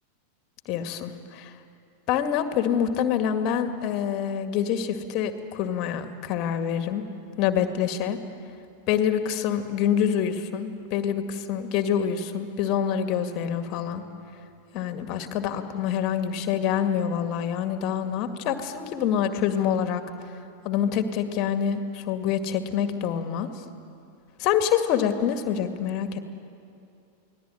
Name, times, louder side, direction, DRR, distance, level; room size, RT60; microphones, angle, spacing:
voice 1, 0.7-1.5 2.1-7.0 7.4-8.2 8.9-14.0 14.7-20.0 20.6-23.5 24.4-26.2, left 8 dB, 40° left, 8 dB, 2.1 m, -26 dB
29.0 x 19.5 x 9.2 m, 2.6 s
figure-of-eight pair, 90°, 0 cm